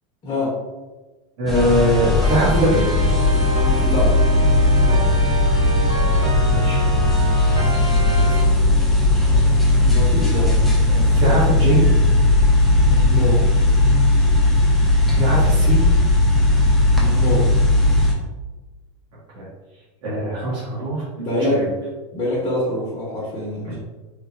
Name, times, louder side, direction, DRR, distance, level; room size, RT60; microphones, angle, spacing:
voice 1, 0.2-0.6 3.9-4.2 9.8-10.7 12.8-13.4 16.9-17.5 21.1-21.7 22.1-23.7, left 1 dB, 30° left, -5 dB, 0.7 m, -25 dB
voice 2, 1.4-2.8 6.5-6.8 8.0-8.5 10.9-11.8 15.1-15.8 19.3-19.5 20.0-21.0 21.5-21.7 23.6-23.8, right 1 dB, 70° right, -7 dB, 0.8 m, -21 dB
sound 1, 1.5-18.1, left 2 dB, ahead, 0.4 m, -17 dB
sound 2, 1.5-8.4, equal, 15° right, 0.9 m, -28 dB
3.0 x 2.1 x 2.4 m, 1.2 s
supercardioid pair, 145°, 17 cm